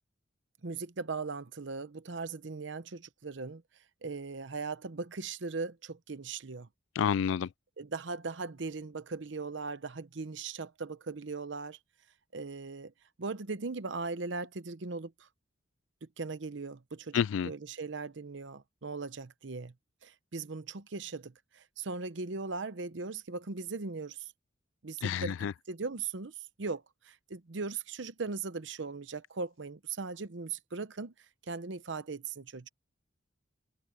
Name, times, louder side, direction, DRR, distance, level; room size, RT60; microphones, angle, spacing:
voice 1, 0.6-3.6 4.0-6.7 7.8-11.8 12.3-12.9 13.2-15.3 16.0-19.7 20.0-24.3 24.8-25.4 25.7-31.1 31.5-32.7, right 4 dB, 70° right, 0.8 m, -39 dB
voice 2, 7.0-7.5 17.1-17.5 25.0-25.5, left 8 dB, 80° left, 0.3 m, -29 dB
head